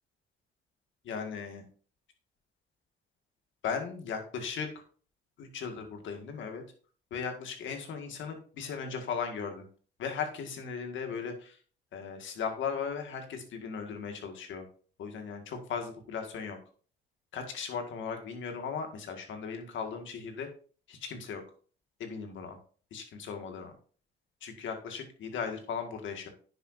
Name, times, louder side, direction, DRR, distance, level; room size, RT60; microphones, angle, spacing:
voice 1, 1.0-1.6 3.6-4.7 5.4-6.6 7.1-9.7 10.0-11.6 11.9-14.6 15.0-16.6 17.3-20.5 20.9-21.4 22.0-22.6 22.9-23.7 24.4-26.3, left 6 dB, 75° left, 5 dB, 1.9 m, -37 dB
9.8 x 6.9 x 2.7 m, 0.41 s
cardioid pair, 90°, 20 cm